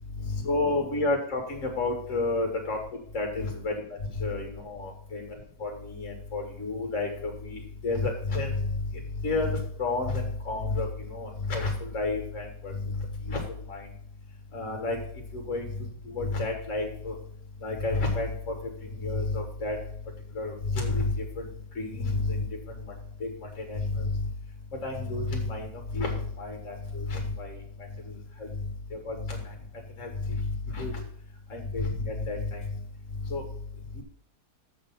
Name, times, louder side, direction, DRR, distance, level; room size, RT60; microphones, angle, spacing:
voice 1, 0.3-2.8 3.1-3.7 4.2-5.3 5.6-8.6 9.2-12.7 13.3-13.4 13.7-13.8 14.5-15.0 15.3-15.6 16.1-17.2 17.6-18.5 19.0-19.8 20.4-21.1 21.8-22.5 23.2-23.3 23.7-24.2 24.8-25.7 25.9-27.6 28.9-29.4 30.0-30.4 30.7-31.0 31.5-32.6 33.3-33.4 34.0-34.1, left 3 dB, 45° left, 1 dB, 1.8 m, -30 dB
7.2 x 6.5 x 5.5 m, 0.63 s
omnidirectional pair, 1.9 m